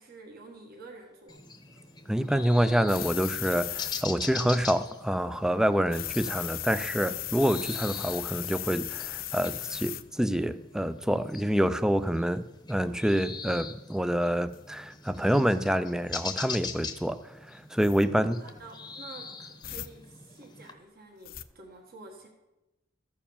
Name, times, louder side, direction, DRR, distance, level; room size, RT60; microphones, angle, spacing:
voice 1, 0.0-1.4 18.2-22.3, right 3 dB, 55° right, 0 dB, 1.5 m, -49 dB
sound 1, 1.3-20.7, left 5 dB, 20° left, 0.9 m, -43 dB
voice 2, 2.1-12.4 12.7-17.2 17.5-18.4, equal, 5° right, 12 dB, 0.4 m, -27 dB
sound 2, 2.9-4.0 5.9-10.0 14.5-14.6 17.8-18.0 19.6-19.9 21.3-21.4, left 13 dB, 50° left, 0.5 m, -36 dB
14.0 x 4.8 x 7.1 m, 0.98 s
head